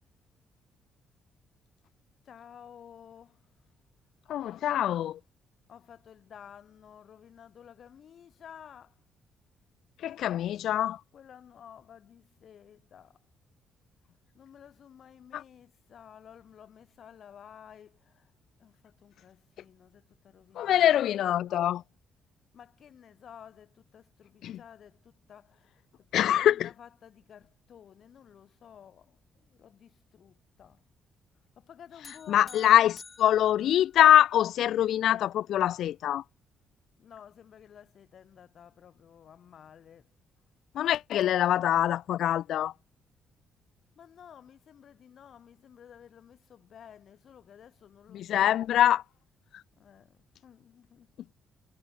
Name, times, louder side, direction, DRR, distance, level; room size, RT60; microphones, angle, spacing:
voice 1, 2.2-3.5 5.7-9.0 11.1-13.2 14.3-18.3 18.6-21.3 22.5-30.8 31.6-32.9 37.0-40.1 44.0-48.9 49.8-51.2, left 8 dB, 60° left, 4.7 m, -53 dB
voice 2, 4.3-5.2 10.0-11.0 15.3-15.4 20.5-21.8 24.4-24.6 26.1-26.7 32.3-36.2 40.7-42.7 48.1-49.0, left 11 dB, 75° left, 0.6 m, -24 dB
sound 1, 32.0-34.5, left 4 dB, 30° left, 2.2 m, -52 dB
cardioid pair, 90°, 0 cm